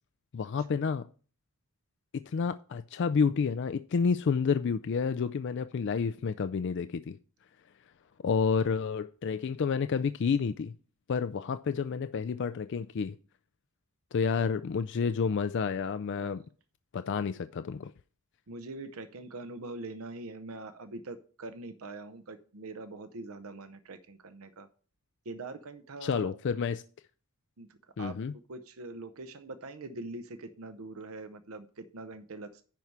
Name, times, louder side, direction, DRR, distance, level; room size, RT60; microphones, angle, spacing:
voice 1, 0.3-1.1 2.3-7.2 8.2-10.7 11.1-13.2 14.1-16.4 16.9-17.9 26.0-26.8 28.0-28.3, left 5 dB, 55° left, 0.4 m, -29 dB
voice 2, 18.5-24.7 25.3-26.3 27.6-27.7 28.0-28.1 28.5-32.5, right 2 dB, 70° right, 0.7 m, -43 dB
10.5 x 4.7 x 5.5 m
head